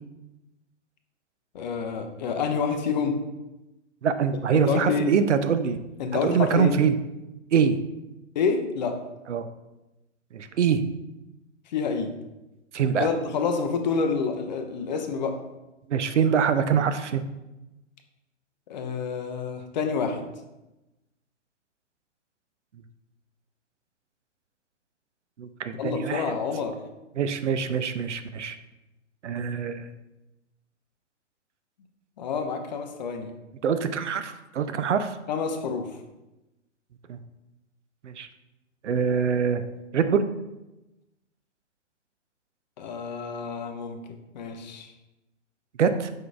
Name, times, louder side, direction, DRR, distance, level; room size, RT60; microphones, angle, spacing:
voice 1, 1.5-3.2 4.5-5.1 6.0-6.7 8.4-9.0 11.7-12.1 13.0-15.4 18.7-20.3 25.8-26.8 32.2-33.3 35.3-35.9 42.8-44.0 44.3-44.9, left 5 dB, 40° left, 6 dB, 0.5 m, -28 dB
voice 2, 4.0-5.8 6.2-7.0 7.5-7.8 9.3-9.5 10.3-10.8 12.7-13.1 15.9-17.2 25.4-26.3 27.2-28.6 29.2-29.9 33.6-35.2 37.1-37.2 38.0-38.3 38.8-39.6 39.9-40.3 45.8-46.1, right 7 dB, 70° right, 10 dB, 0.5 m, -24 dB
5.2 x 3.7 x 2.4 m, 0.99 s
figure-of-eight pair, 115°, 36 cm